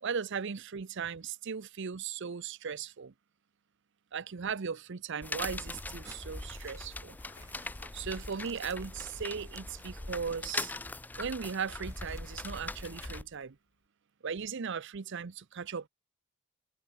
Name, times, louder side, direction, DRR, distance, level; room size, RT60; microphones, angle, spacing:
voice 1, 0.0-3.1 4.1-7.2 7.9-10.7 11.2-13.6 14.2-15.9, right 6 dB, 60° right, 0.6 m, -37 dB
sound 1, 5.2-13.2, left 2 dB, 10° left, 0.3 m, -41 dB
sound 2, 5.8-13.0, right 3 dB, 15° right, 2.6 m, -60 dB
Squeak, 7.0-13.6, left 4 dB, 60° left, 1.4 m, -57 dB
head